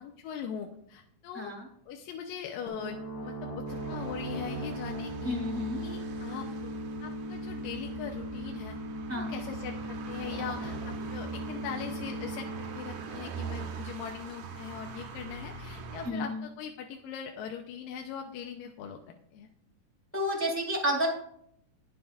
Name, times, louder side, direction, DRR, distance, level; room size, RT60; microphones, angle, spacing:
voice 1, 0.0-1.5 1.9-5.4 5.8-6.7 7.0-8.8 9.1-19.0 19.3-19.5, left 7 dB, 80° left, 3 dB, 2.5 m, -41 dB
voice 2, 1.3-1.7 5.2-5.8 9.1-9.4 16.0-16.4 20.1-21.1, equal, 5° left, -2 dB, 1.9 m, -31 dB
sound 1, 2.7-14.2, right 1 dB, 60° left, 4.3 m, -39 dB
sound 2, 3.7-16.1, right 5 dB, 65° right, 2.4 m, -43 dB
21.0 x 7.1 x 2.5 m, 0.69 s
omnidirectional pair, 4.1 m